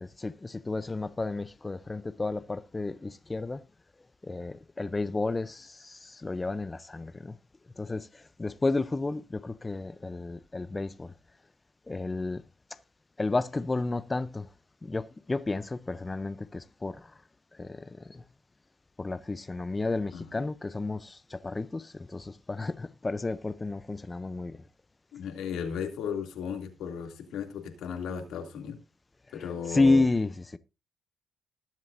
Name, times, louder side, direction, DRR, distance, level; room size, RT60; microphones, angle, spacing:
voice 1, 0.0-3.6 4.2-7.4 7.8-11.1 11.9-12.4 12.7-12.8 13.2-14.5 14.8-17.2 17.5-18.2 19.0-24.6 29.7-30.6, left 3 dB, 20° left, 0.5 m, -31 dB
voice 2, 25.1-28.8 29.3-30.0, left 7 dB, 80° left, 2.5 m, -35 dB
19.5 x 7.5 x 2.6 m
cardioid pair, 90°, 0 cm